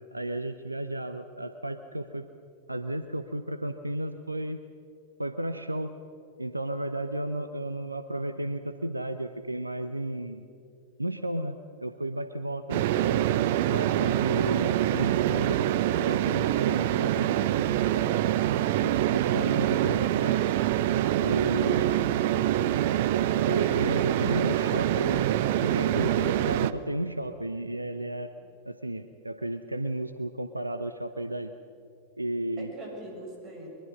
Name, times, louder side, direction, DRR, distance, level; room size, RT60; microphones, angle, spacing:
voice 1, 0.0-2.3 2.7-4.6 5.2-5.9 6.4-10.5 11.0-11.6 11.8-13.1 13.7-15.6 15.9-17.8 19.0-20.4 21.2-22.1 23.5-25.3 25.6-28.3 28.7-31.5 32.2-32.7, right 1 dB, 85° right, 10 dB, 0.7 m, -33 dB
sound 1, 12.7-26.7, right 12 dB, 50° right, 0.6 m, -25 dB
voice 2, 32.6-33.7, right 1 dB, 35° right, 0 dB, 7.0 m, -44 dB
22.5 x 22.5 x 6.5 m, 2.5 s
figure-of-eight pair, 90°, 0 cm